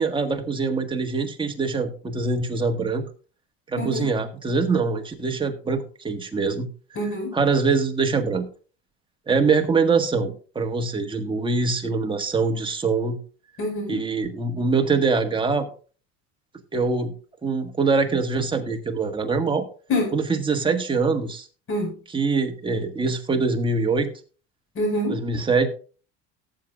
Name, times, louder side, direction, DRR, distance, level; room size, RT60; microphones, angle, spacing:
voice 1, 0.0-3.0 3.7-6.7 7.3-8.5 9.3-13.2 13.9-15.7 16.7-17.1 17.4-19.7 20.1-21.5 22.1-24.1 25.1-25.7, right 4 dB, 15° right, 4 dB, 1.6 m, -23 dB
voice 2, 3.8-4.1 7.0-7.3 13.6-14.0 19.9-20.1 21.7-21.9 24.8-25.2, left 1 dB, 45° left, 3 dB, 5.3 m, -25 dB
18.0 x 7.6 x 2.5 m, 0.39 s
cardioid pair, 115°, 30 cm